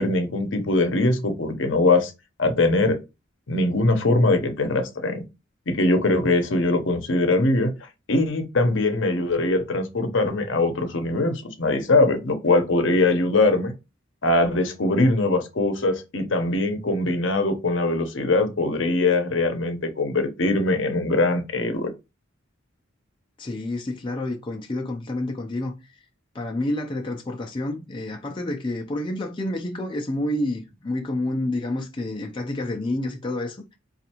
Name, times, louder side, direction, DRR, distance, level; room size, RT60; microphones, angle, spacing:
voice 1, 0.0-2.1 2.4-3.0 3.5-5.2 5.7-7.7 8.1-13.7 14.2-21.9, left 2 dB, 65° left, 0.7 m, -22 dB
voice 2, 23.4-26.0 26.3-33.8, left 1 dB, 25° left, 0.4 m, -29 dB
4.4 x 2.4 x 2.9 m
head